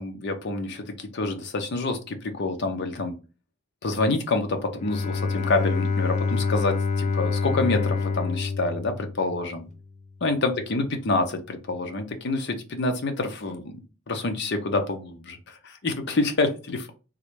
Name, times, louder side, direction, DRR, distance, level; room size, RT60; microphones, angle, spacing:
voice 1, 0.0-3.2 3.8-9.6 10.2-16.9, left 2 dB, 60° left, 0.7 m, -27 dB
Bowed string instrument, 4.7-9.7, left 4 dB, 35° left, 0.3 m, -27 dB
3.6 x 2.1 x 3.1 m
head